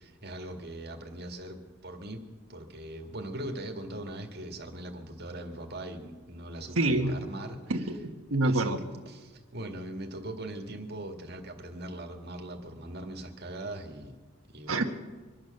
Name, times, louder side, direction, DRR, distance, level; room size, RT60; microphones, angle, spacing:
voice 1, 0.0-2.2 2.5-7.6 8.4-8.8 9.1-14.2 14.5-14.8, right 1 dB, 50° right, 3 dB, 1.9 m, -40 dB
voice 2, 6.7-7.1 7.7-8.8 14.7-14.8, right 2 dB, 85° right, 5 dB, 1.5 m, -27 dB
24.0 x 9.1 x 6.6 m, 1.3 s
head